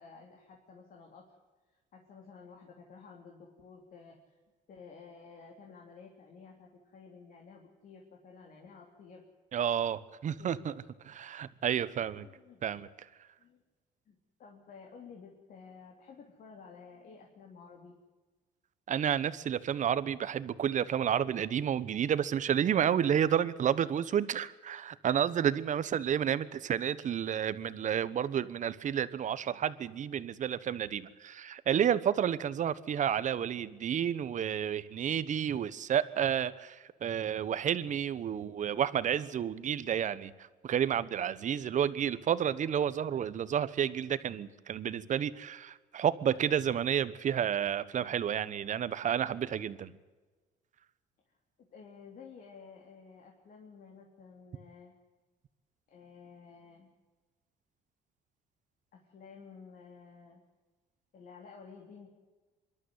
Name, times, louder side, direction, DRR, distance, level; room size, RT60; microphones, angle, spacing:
voice 1, 0.0-1.4 1.7-4.4 4.7-9.2 10.4-10.9 12.2-12.6 13.4-13.6 14.1-18.0 51.3-51.4 51.7-54.9 55.9-56.9 58.9-60.4 61.1-62.1, left 5 dB, 55° left, 1 dB, 3.4 m, -53 dB
voice 2, 9.5-10.7 11.0-12.3 12.6-12.9 18.9-40.3 40.6-50.0, right 9 dB, 45° right, 15 dB, 1.2 m, -30 dB
25.5 x 12.5 x 9.5 m, 1.3 s
cardioid pair, 110°, 17 cm